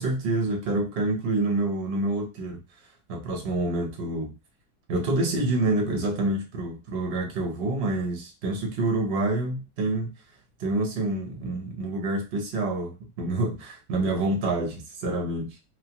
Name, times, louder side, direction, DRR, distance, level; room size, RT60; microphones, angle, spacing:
voice 1, 0.0-2.6 3.1-4.4 4.9-10.1 10.6-15.6, right 2 dB, 50° right, 0.8 m, -27 dB
3.0 x 2.0 x 2.8 m
omnidirectional pair, 1.8 m